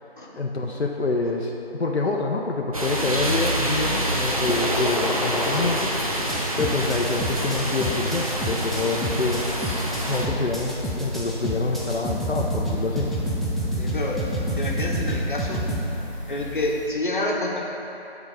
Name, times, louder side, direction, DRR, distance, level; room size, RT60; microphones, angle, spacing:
voice 1, 0.4-6.0 6.6-9.5 10.1-13.1, left 3 dB, 85° left, 0 dB, 0.8 m, -26 dB
sound 1, 2.7-10.3, right 1 dB, 35° right, 0.6 m, -26 dB
sound 2, 4.4-5.7 6.1-15.8, equal, ahead, 0.4 m, -28 dB
sound 3, 9.5-16.9, left 1 dB, 30° left, 0.8 m, -39 dB
voice 2, 13.8-14.3 14.6-15.6 16.3-17.7, left 2 dB, 50° left, -2 dB, 1.1 m, -28 dB
10.0 x 4.0 x 4.9 m, 3.0 s
figure-of-eight pair, 165°, 32 cm